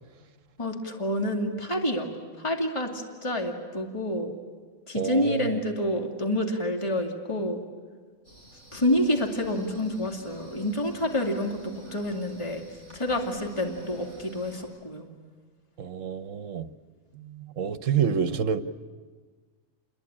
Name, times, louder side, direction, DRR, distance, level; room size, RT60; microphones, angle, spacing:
voice 1, 0.6-2.1 2.4-4.3 4.9-7.6 8.7-12.6 12.9-15.1, left 1 dB, 20° left, 2 dB, 2.5 m, -28 dB
voice 2, 4.9-5.6 15.8-16.7 17.1-18.6, right 7 dB, 65° right, 11 dB, 1.3 m, -28 dB
sound 1, 8.2-14.6, left 1 dB, 55° left, 7.8 m, -47 dB
30.0 x 21.5 x 8.8 m, 1.5 s
omnidirectional pair, 1.4 m